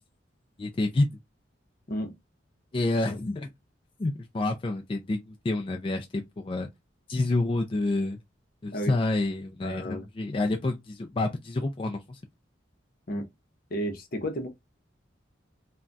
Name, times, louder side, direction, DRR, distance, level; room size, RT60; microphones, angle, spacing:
voice 1, 0.6-1.1 2.7-3.5 4.0-6.7 7.1-8.2 8.6-12.2, left 2 dB, 25° left, 0.3 m, -28 dB
voice 2, 9.6-10.0 13.1-13.3 13.7-14.5, equal, 50° left, 0.7 m, -32 dB
2.3 x 2.2 x 3.8 m
head